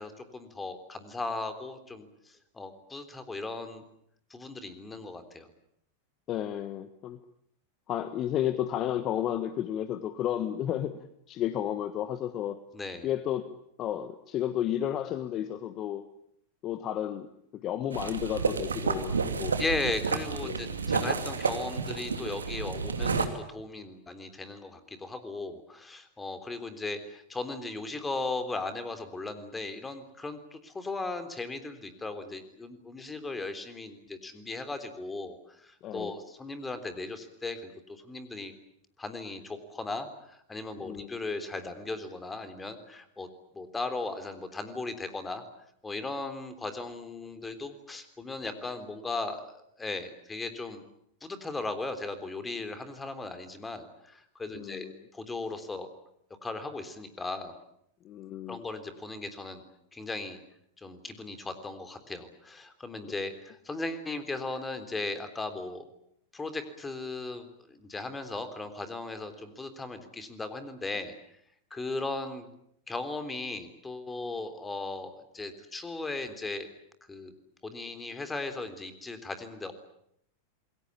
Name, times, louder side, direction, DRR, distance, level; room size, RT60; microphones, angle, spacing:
voice 1, 0.0-3.8 4.3-5.5 12.7-13.1 19.6-38.5 39.0-43.3 43.5-45.4 45.8-50.8 51.2-54.9 55.1-55.9 56.4-57.5 58.5-59.6 59.9-60.4 60.8-65.8 66.3-71.1 71.7-72.5 72.9-76.7 77.1-77.3 77.6-79.7, left 3 dB, 10° left, 9 dB, 3.5 m, -37 dB
voice 2, 6.3-7.2 7.9-12.6 13.0-13.5 13.8-16.1 16.6-17.3 17.5-19.6 20.4-20.6 35.8-36.2 40.8-41.2 54.5-55.0 58.0-58.6, left 11 dB, 35° left, 12 dB, 1.3 m, -32 dB
sound 1, 17.9-23.3, right 5 dB, 75° right, 2.6 m, -30 dB
28.0 x 22.0 x 8.5 m, 0.73 s
figure-of-eight pair, 90°, 0 cm